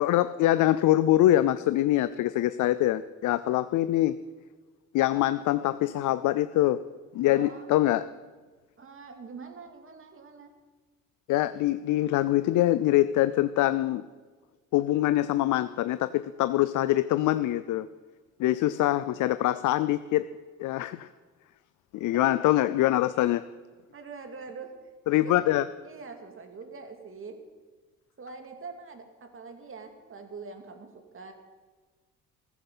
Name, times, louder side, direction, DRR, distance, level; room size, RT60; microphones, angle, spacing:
voice 1, 0.0-4.2 4.9-6.8 7.1-8.1 11.3-14.0 14.7-17.9 18.4-20.3 20.6-21.1 21.9-23.4 25.1-25.7, left 14 dB, 80° left, 14 dB, 0.5 m, -24 dB
voice 2, 7.2-7.7 8.8-10.5 22.1-22.3 23.9-24.7 25.2-25.5 25.8-27.4 28.2-31.3, right 4 dB, 45° right, 5 dB, 2.4 m, -44 dB
15.0 x 14.5 x 5.5 m, 1.4 s
cardioid pair, 90°, 30 cm